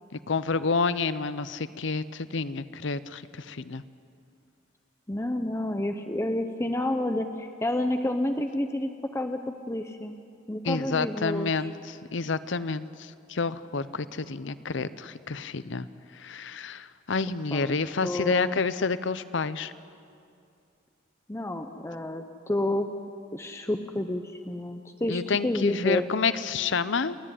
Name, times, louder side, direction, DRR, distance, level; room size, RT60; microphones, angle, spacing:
voice 1, 0.1-3.8 10.6-15.9 16.1-19.7 25.1-27.2, left 4 dB, 65° left, 15 dB, 0.7 m, -29 dB
voice 2, 5.1-10.2 10.5-11.7 17.5-17.7 18.0-18.6 21.3-22.9 23.3-26.1, left 1 dB, 15° left, 6 dB, 0.7 m, -30 dB
29.0 x 10.0 x 9.9 m, 2.5 s
head